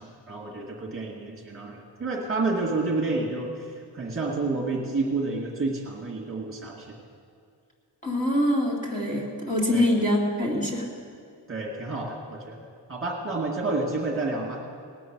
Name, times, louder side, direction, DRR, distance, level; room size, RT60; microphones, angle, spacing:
voice 1, 0.0-3.5 3.9-6.9 9.7-9.9 11.5-12.6 12.9-14.6, right 3 dB, 30° right, -3 dB, 2.1 m, -29 dB
voice 2, 8.0-10.9, left 1 dB, 15° left, -4 dB, 2.3 m, -24 dB
19.5 x 8.4 x 6.2 m, 2.3 s
wide cardioid pair, 175°, 43 cm